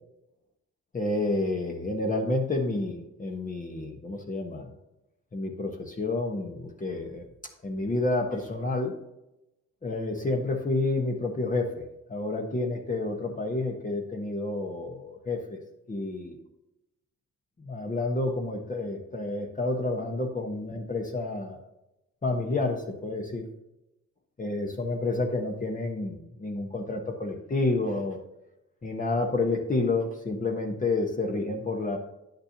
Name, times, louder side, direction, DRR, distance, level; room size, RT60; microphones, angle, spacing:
voice 1, 0.9-4.7 5.3-7.3 7.6-9.0 9.8-15.6 15.9-16.4 17.6-21.6 22.2-23.5 24.4-28.2 28.8-32.0, left 2 dB, 25° left, 2 dB, 1.2 m, -29 dB
9.6 x 6.5 x 2.9 m, 0.91 s
cardioid pair, 90°, 30 cm